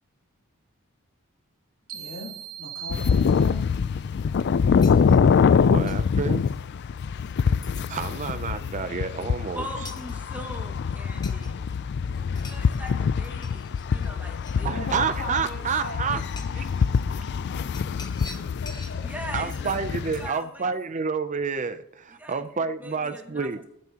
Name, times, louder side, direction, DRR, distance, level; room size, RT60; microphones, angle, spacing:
voice 1, 1.9-2.3 2.6-3.7 14.2-14.3 14.7-16.7 17.1-17.8 18.2-19.3, left 1 dB, 75° left, -2 dB, 3.1 m, -40 dB
sound 1, 1.9-3.8, right 8 dB, 80° right, 2.6 m, -40 dB
sound 2, 2.9-20.3, left 6 dB, 50° left, 0.3 m, -25 dB
sound 3, 3.3-3.4 4.0-4.3 4.8-6.5 7.0-7.4 7.6-7.9 9.8-10.2 11.2-11.8 12.1-13.0 13.2-14.7 15.6-15.7 16.2-17.0 17.7-19.0 19.5-19.8 20.1-20.4, left 3 dB, 20° left, 1.0 m, -46 dB
voice 2, 5.7-6.4 7.9-9.6 14.6-16.2 16.6-16.7 19.3-23.6, right 5 dB, 35° right, 11 dB, 0.5 m, -29 dB
voice 3, 9.5-11.6 12.3-14.8 16.1-16.2 16.5-16.6 18.7-19.8 20.2-20.7 22.2-22.5 22.8-23.7, equal, 10° right, 1 dB, 1.9 m, -40 dB
20.5 x 9.5 x 2.9 m, 0.80 s
head